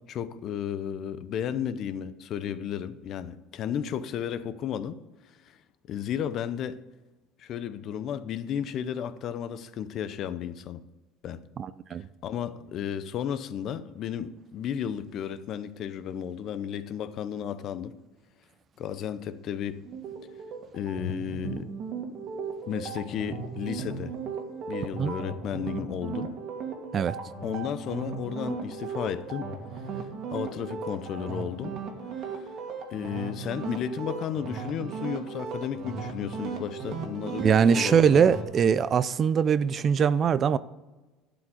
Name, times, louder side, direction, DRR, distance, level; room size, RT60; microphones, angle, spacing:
voice 1, 0.1-5.0 5.3-5.6 5.9-6.8 7.4-10.8 11.2-11.4 12.2-17.9 18.8-19.8 20.7-21.7 22.7-24.1 24.7-26.3 27.4-29.5 29.9-31.8 32.2-32.4 32.9-38.3, left 9 dB, 45° left, 0.6 m, -33 dB
voice 2, 11.6-12.0 24.9-25.1 26.9-27.2 37.4-40.6, right 7 dB, 30° right, 0.3 m, -22 dB
sound 1, 19.8-38.4, right 5 dB, 45° right, 1.8 m, -37 dB
12.0 x 4.9 x 7.8 m
cardioid pair, 145°, 0 cm